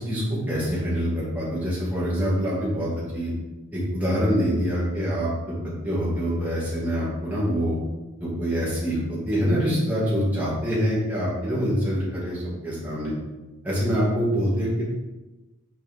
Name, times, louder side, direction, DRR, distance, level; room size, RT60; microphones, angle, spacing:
voice 1, 0.0-3.3 3.7-5.5 5.8-7.8 8.2-13.1 13.6-14.9, equal, 5° right, -8 dB, 2.2 m, -25 dB
6.5 x 4.7 x 3.7 m, 1.1 s
head